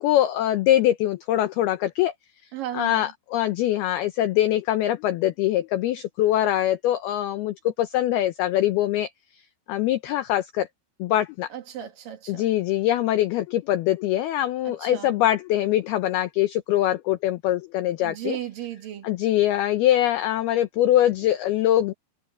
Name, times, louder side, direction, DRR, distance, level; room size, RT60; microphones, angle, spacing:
voice 1, 0.0-2.1 2.7-9.1 9.7-10.7 11.0-11.5 12.3-18.4 19.0-21.9, left 13 dB, 80° left, 2.2 m, -23 dB
voice 2, 2.5-3.1 11.5-12.5 14.6-15.1 18.0-19.1, right 11 dB, 55° right, 3.1 m, -35 dB
omnidirectional pair, 5.6 m